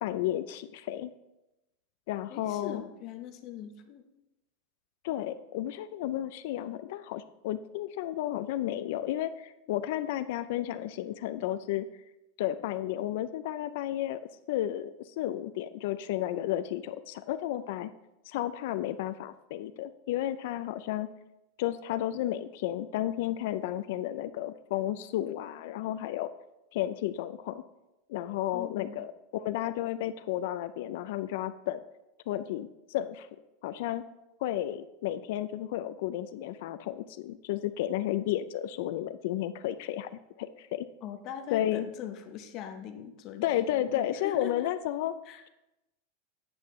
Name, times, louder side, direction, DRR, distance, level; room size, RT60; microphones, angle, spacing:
voice 1, 0.0-1.1 2.1-2.8 5.0-11.9 12.4-14.2 14.5-17.9 18.3-21.1 21.6-26.3 26.7-27.6 28.1-31.8 32.3-33.3 33.6-34.0 34.4-40.9 41.5-41.9 43.4-45.1, left 13 dB, 55° left, 11 dB, 0.3 m, -32 dB
voice 2, 2.3-4.1 28.5-29.0 41.0-44.7 45.3-45.4, left 9 dB, 35° left, 6 dB, 0.7 m, -41 dB
8.6 x 7.6 x 3.1 m, 0.94 s
supercardioid pair, 170°, 0 cm